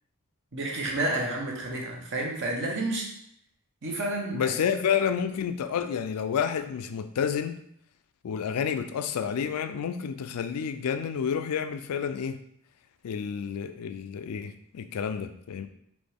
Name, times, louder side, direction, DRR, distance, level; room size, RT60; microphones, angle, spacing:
voice 1, 0.5-3.1 3.8-4.5, right 2 dB, 55° right, -1 dB, 1.0 m, -30 dB
voice 2, 4.3-7.6 8.2-12.4 13.0-15.7, left 7 dB, 80° left, 10 dB, 0.4 m, -29 dB
4.2 x 3.1 x 3.4 m, 0.70 s
head